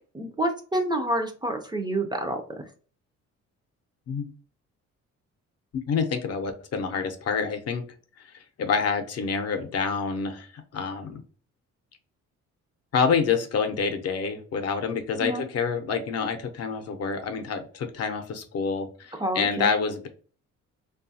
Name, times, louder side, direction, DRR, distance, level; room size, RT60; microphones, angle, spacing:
voice 1, 0.1-2.6 15.2-15.4 19.2-19.7, right 1 dB, 15° right, 4 dB, 0.4 m, -28 dB
voice 2, 5.9-7.8 8.3-11.2 12.9-20.1, left 5 dB, 55° left, 6 dB, 0.6 m, -27 dB
2.7 x 2.3 x 2.6 m, 0.40 s
cardioid pair, 90°, 30 cm